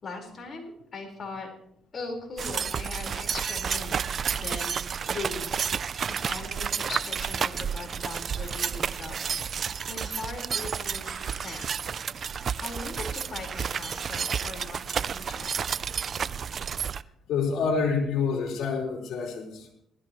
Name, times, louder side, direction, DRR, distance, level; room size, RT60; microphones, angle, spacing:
voice 1, 0.0-1.5 1.9-4.0 4.3-4.8 5.1-12.2 12.6-15.8, left 3 dB, 45° left, 1 dB, 4.8 m, -40 dB
sound 1, 2.4-17.0, right 7 dB, 50° right, 0.4 m, -31 dB
voice 2, 17.3-19.7, left 5 dB, 75° left, -1 dB, 4.4 m, -27 dB
19.0 x 14.0 x 3.2 m, 0.71 s
cardioid pair, 80°, 0 cm